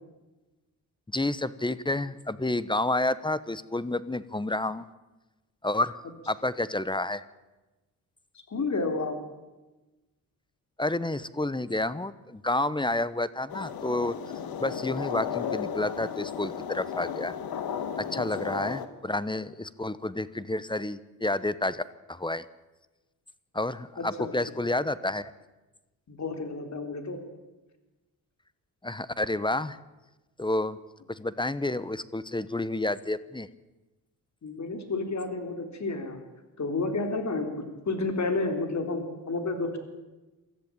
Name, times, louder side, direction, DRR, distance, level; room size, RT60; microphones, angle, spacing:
voice 1, 1.1-4.8 5.6-6.0 6.3-7.2 10.8-14.1 14.6-17.4 18.0-21.8 22.1-22.4 23.5-25.3 28.8-29.8 30.4-30.8 31.1-33.5, left 2 dB, 15° left, 16 dB, 1.0 m, -30 dB
voice 2, 8.5-9.2 18.1-18.5 24.0-24.3 26.1-27.2 34.4-36.2 36.6-37.5 37.9-39.8, left 3 dB, 50° left, 6 dB, 4.0 m, -31 dB
sound 1, 13.5-18.9, left 8 dB, 75° left, 1.7 m, -34 dB
23.5 x 14.0 x 8.8 m, 1.1 s
cardioid pair, 80°, 36 cm